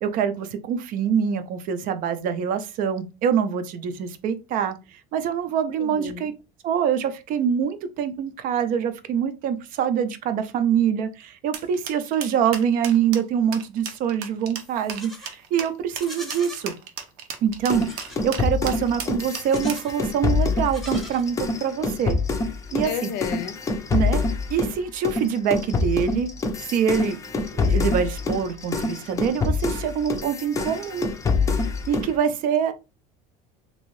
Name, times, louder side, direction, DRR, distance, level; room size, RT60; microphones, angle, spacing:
voice 1, 0.0-6.3 6.6-16.7 17.4-22.2 22.7-23.1 23.9-24.2 24.5-26.3 26.7-27.2 27.5-31.1 31.9-32.7, right 8 dB, 50° right, 0.5 m, -25 dB
voice 2, 5.8-6.3 22.8-23.6, left 8 dB, 65° left, 0.6 m, -32 dB
sound 1, 11.5-19.9, right 7 dB, 90° right, 0.7 m, -35 dB
Livestock farm animals working animals, 14.6-15.3 15.9-16.7 17.8-18.3 19.3-20.0 20.6-21.6, left 1 dB, ahead, 0.8 m, -42 dB
sound 2, 17.7-24.8 25.0-32.1, left 4 dB, 15° left, 0.5 m, -26 dB
3.0 x 2.7 x 3.0 m
cardioid pair, 135°, 18 cm